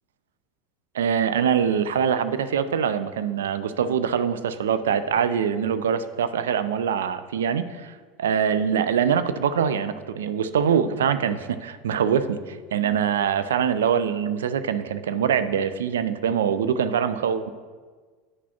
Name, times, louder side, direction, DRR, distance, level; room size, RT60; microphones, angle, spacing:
voice 1, 0.9-17.5, right 7 dB, 65° right, 11 dB, 0.3 m, -24 dB
9.2 x 6.0 x 2.9 m, 1.5 s
figure-of-eight pair, 75°, 0 cm